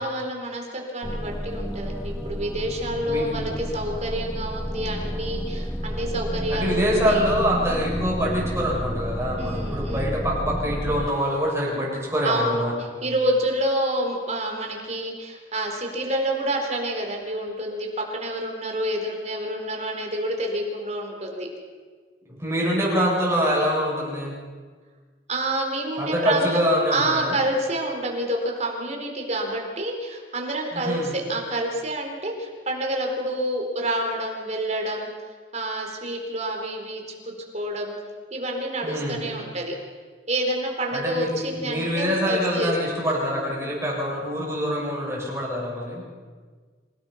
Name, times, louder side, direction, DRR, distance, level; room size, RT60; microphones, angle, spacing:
voice 1, 0.0-7.3 9.4-10.1 12.2-21.5 25.3-35.1 35.5-38.0 38.3-39.7 40.3-43.0, right 1 dB, 40° right, 1 dB, 4.2 m, -28 dB
sound 1, 1.0-11.4, equal, 5° left, 0.7 m, -31 dB
voice 2, 3.1-3.5 6.5-12.7 22.3-24.4 26.0-27.4 30.7-31.1 38.8-39.2 40.9-46.0, equal, 15° right, -4 dB, 8.0 m, -25 dB
27.0 x 18.5 x 5.9 m, 1.5 s
head